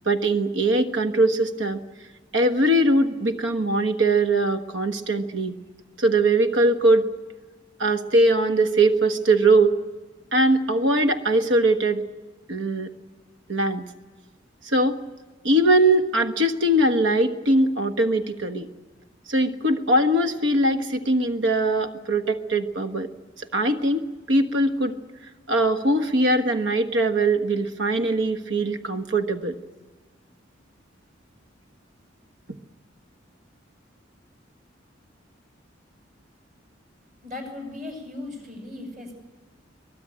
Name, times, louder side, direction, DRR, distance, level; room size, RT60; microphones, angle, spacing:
voice 1, 0.0-1.8 2.3-5.6 6.0-7.0 7.8-9.7 10.3-12.0 12.5-12.9 13.5-13.8 14.6-15.0 15.4-18.7 19.3-23.1 23.4-24.0 24.3-25.0 25.5-29.6, right 1 dB, 80° right, 7 dB, 1.4 m, -21 dB
voice 2, 37.2-39.2, left 2 dB, 45° right, 3 dB, 7.0 m, -37 dB
23.0 x 20.0 x 8.9 m, 1.3 s
head